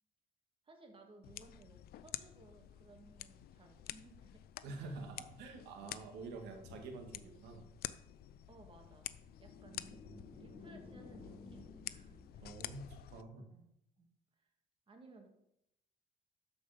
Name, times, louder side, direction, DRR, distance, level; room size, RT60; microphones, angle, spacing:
voice 1, 0.7-4.4 4.8-4.9 5.7-5.9 8.5-9.1 9.4-9.9 10.2-12.4 13.5-13.7 14.0-14.1 14.4-14.5 14.9-15.3, right 2 dB, 30° right, 3 dB, 2.3 m, -60 dB
sound 1, 1.2-13.2, left 13 dB, 65° left, 0.5 m, -50 dB
voice 2, 4.6-7.7 9.7-10.5 12.4-13.5, right 3 dB, 90° right, 3 dB, 2.1 m, -48 dB
sound 2, 7.0-12.7, left 3 dB, 45° left, 1.6 m, -57 dB
13.0 x 5.1 x 5.2 m, 0.77 s
cardioid pair, 110°, 17 cm